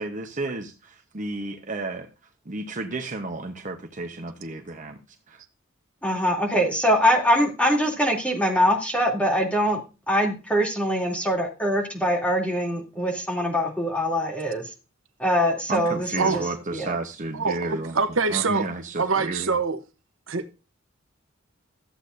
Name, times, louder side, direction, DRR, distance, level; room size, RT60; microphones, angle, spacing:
voice 1, 0.0-2.1 2.5-5.0 5.3-5.4 15.7-18.0 18.3-19.5, right 2 dB, 40° right, 0.9 m, -32 dB
voice 2, 6.0-9.8 10.1-14.6 15.2-16.1 16.3-16.4 16.7-16.9, equal, 5° left, 2.8 m, -23 dB
voice 3, 17.3-18.7 19.0-19.8 20.3-20.5, right 4 dB, 75° right, 1.0 m, -24 dB
14.0 x 8.1 x 2.6 m
head